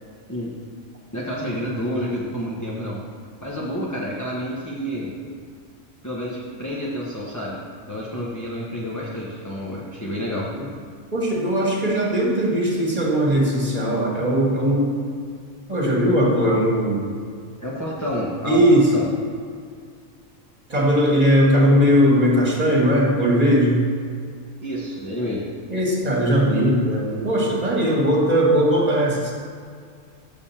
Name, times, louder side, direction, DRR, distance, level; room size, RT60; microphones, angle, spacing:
voice 1, 1.1-3.0 3.4-5.1 6.0-7.6 7.9-10.5 17.6-19.1 24.6-25.5, equal, 15° left, -6 dB, 1.0 m, -29 dB
voice 2, 11.1-14.9 15.7-17.0 18.4-18.9 20.7-23.8 25.7-29.3, equal, 30° right, -3 dB, 2.0 m, -19 dB
7.1 x 5.3 x 7.1 m, 2.1 s
omnidirectional pair, 1.4 m